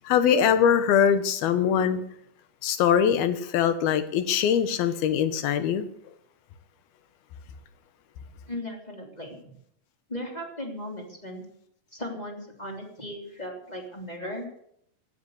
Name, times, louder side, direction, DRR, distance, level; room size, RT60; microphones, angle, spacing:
voice 1, 0.1-2.0 2.6-5.8, left 8 dB, 90° left, 11 dB, 3.1 m, -22 dB
voice 2, 8.5-9.5 10.1-11.4 11.9-14.5, left 1 dB, 10° left, 1 dB, 3.0 m, -37 dB
16.0 x 9.5 x 8.0 m, 0.71 s
omnidirectional pair, 4.2 m